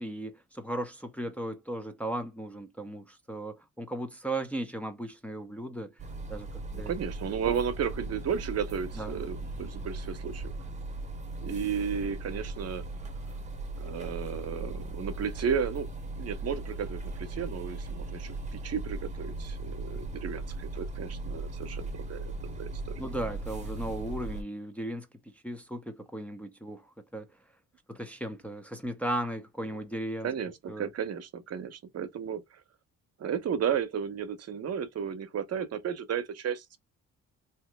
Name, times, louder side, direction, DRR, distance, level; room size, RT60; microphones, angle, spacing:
voice 1, 0.0-5.9 6.3-6.9 7.5-7.6 9.0-9.2 23.0-25.1 25.4-27.3 27.9-30.3 30.7-30.9, right 1 dB, 5° left, 0.6 m, -36 dB
sound 1, 6.0-24.4, right 2 dB, 25° right, 0.9 m, -38 dB
voice 2, 6.7-10.5 11.4-12.8 13.8-15.9 16.2-22.7 30.2-32.6 33.2-36.8, right 7 dB, 55° right, 0.8 m, -33 dB
2.9 x 2.8 x 3.4 m
cardioid pair, 90°, 30 cm